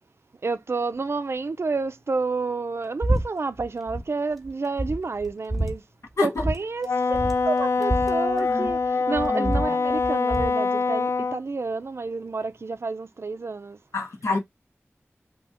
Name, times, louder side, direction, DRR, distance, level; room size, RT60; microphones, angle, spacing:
voice 1, 0.4-5.8 6.2-13.8, right 4 dB, 60° right, 0.4 m, -30 dB
sound 1, 3.0-3.2 3.5-4.1 4.4-4.5 4.8-5.7 6.4-6.6 6.8-6.9 7.1-8.8 9.1-10.6, right 1 dB, ahead, 1.1 m, -27 dB
Wind instrument woodwind instrument, 6.8-11.4, left 4 dB, 60° left, 0.3 m, -24 dB
voice 2, 8.4-9.8 13.9-14.4, left 3 dB, 90° left, 1.1 m, -29 dB
2.8 x 2.7 x 3.5 m
wide cardioid pair, 55°, 5 cm